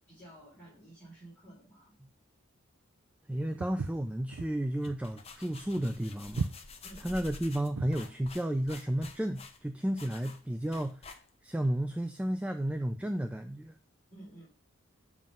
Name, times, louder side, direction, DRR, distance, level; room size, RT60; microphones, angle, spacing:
voice 1, 0.0-2.0 6.8-7.2 14.1-14.5, right 1 dB, 10° left, -11 dB, 3.9 m, -52 dB
voice 2, 3.3-6.5 7.0-11.2 11.4-13.7, right 1 dB, 5° right, 6 dB, 0.4 m, -32 dB
Walk footsteps, 3.6-8.1, right 4 dB, 75° right, 0.5 m, -37 dB
sound 1, 4.6-11.6, left 3 dB, 30° left, 0.8 m, -49 dB
7.5 x 3.7 x 5.3 m, 0.36 s
head